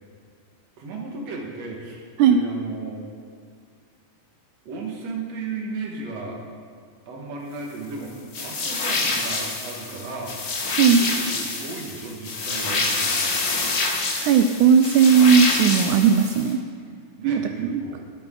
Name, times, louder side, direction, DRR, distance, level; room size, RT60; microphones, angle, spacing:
voice 1, 0.8-3.0 4.7-6.4 7.1-10.4 10.9-13.4 17.2-18.0, right 3 dB, 55° right, -1 dB, 2.6 m, -35 dB
sound 1, 8.3-16.5, left 3 dB, 70° left, 0.9 m, -26 dB
voice 2, 14.2-16.6 17.2-17.8, right 7 dB, 80° right, 6 dB, 1.8 m, -17 dB
20.5 x 8.3 x 3.9 m, 2.1 s
omnidirectional pair, 3.9 m